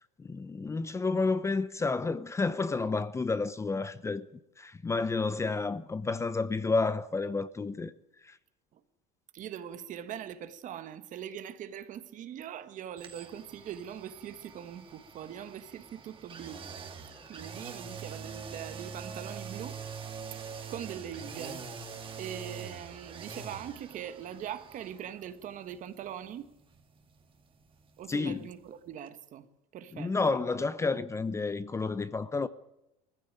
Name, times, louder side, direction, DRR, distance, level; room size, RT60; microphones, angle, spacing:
voice 1, 0.2-4.3 4.6-7.9 8.2-8.4 28.1-28.4 29.9-32.5, left 3 dB, 15° left, 0.7 m, -30 dB
voice 2, 9.3-16.9 17.3-19.8 20.3-20.4 20.7-21.7 22.2-26.5 28.0-30.4, right 9 dB, 45° right, 1.5 m, -42 dB
sound 1, 13.0-28.8 29.1-29.2, right 6 dB, 30° right, 2.4 m, -45 dB
20.5 x 15.0 x 9.1 m
supercardioid pair, 120°, 18 cm